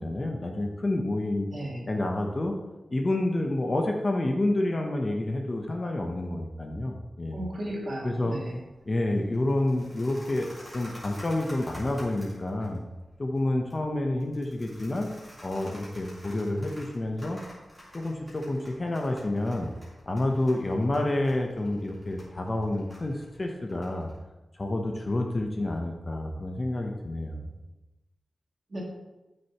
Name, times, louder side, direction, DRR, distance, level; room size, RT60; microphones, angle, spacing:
voice 1, 0.0-1.5 1.9-2.6 2.9-7.4 8.0-8.3 8.8-12.8 13.2-15.1 15.4-17.4 17.9-19.7 20.1-24.1 24.6-27.5, left 1 dB, 25° left, 2 dB, 0.8 m, -29 dB
voice 2, 1.5-1.9 7.3-8.6 28.7-28.8, right 1 dB, 40° right, -3 dB, 2.3 m, -35 dB
sound 1, 7.9-24.2, equal, 5° left, 3.4 m, -50 dB
12.5 x 6.5 x 3.0 m, 1.1 s
wide cardioid pair, 165°, 0 cm